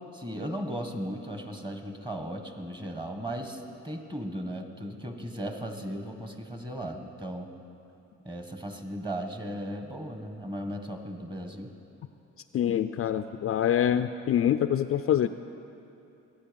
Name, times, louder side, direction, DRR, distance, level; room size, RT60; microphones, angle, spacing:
voice 1, 0.1-7.5 8.2-11.7, equal, 15° right, 5 dB, 1.5 m, -36 dB
voice 2, 12.5-15.3, left 10 dB, 50° left, 10 dB, 0.4 m, -25 dB
22.0 x 8.9 x 5.3 m, 2.8 s
cardioid pair, 90°, 30 cm